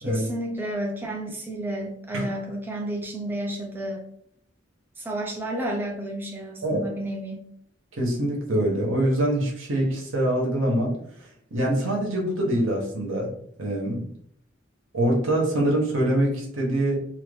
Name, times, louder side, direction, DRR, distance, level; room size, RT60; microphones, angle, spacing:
voice 1, 0.0-4.0 5.0-7.5, right 1 dB, 10° right, -1 dB, 0.5 m, -31 dB
voice 2, 7.9-11.0 11.5-13.3 13.6-14.1 14.9-17.0, right 1 dB, 85° right, -1 dB, 1.1 m, -24 dB
2.8 x 2.6 x 3.4 m, 0.69 s
head